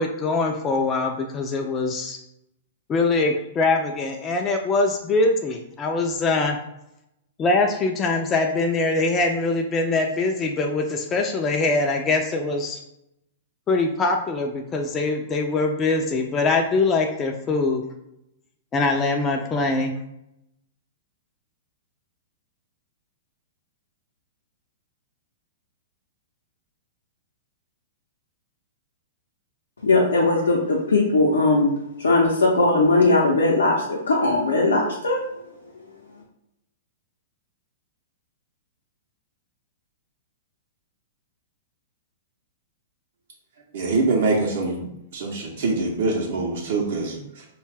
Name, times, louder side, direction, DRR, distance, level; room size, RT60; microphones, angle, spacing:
voice 1, 0.0-2.2 2.9-6.6 7.4-12.8 13.7-17.8 18.7-19.9, left 3 dB, 25° left, 2 dB, 0.3 m, -23 dB
voice 2, 29.8-31.7 32.0-35.2, left 2 dB, 90° left, -3 dB, 0.6 m, -19 dB
voice 3, 43.7-44.9 45.1-47.4, right 3 dB, 70° right, -1 dB, 0.6 m, -24 dB
2.4 x 2.2 x 3.3 m, 0.84 s
hypercardioid pair, 120°, 0 cm